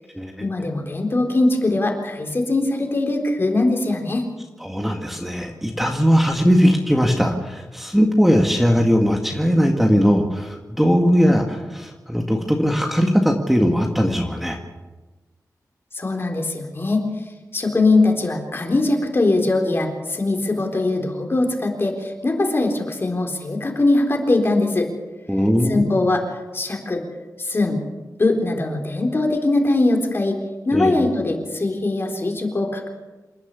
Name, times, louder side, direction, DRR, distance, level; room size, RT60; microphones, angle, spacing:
voice 1, 0.4-4.3 15.9-17.0 17.5-24.9 25.7-27.0 27.4-27.8 28.2-30.4 30.6-32.9, left 2 dB, 40° left, 2 dB, 3.9 m, -21 dB
voice 2, 4.6-14.6 25.3-25.9 30.7-30.9, equal, 5° right, 2 dB, 1.9 m, -19 dB
27.5 x 11.5 x 8.4 m, 1.2 s
wide cardioid pair, 130°, 6 cm